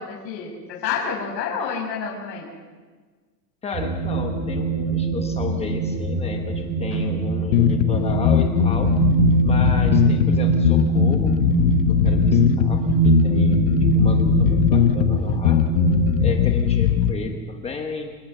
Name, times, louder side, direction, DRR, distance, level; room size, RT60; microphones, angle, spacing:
voice 1, 0.0-2.5, left 6 dB, 80° left, -3 dB, 6.4 m, -29 dB
voice 2, 3.6-8.9 9.4-15.6 16.2-18.1, left 5 dB, 10° left, 4 dB, 1.1 m, -33 dB
sound 1, 3.7-16.4, right 4 dB, 30° right, 2.7 m, -23 dB
sound 2, 7.5-17.1, left 11 dB, 50° left, 1.3 m, -19 dB
28.5 x 16.0 x 6.7 m, 1.4 s
supercardioid pair, 170°, 50 cm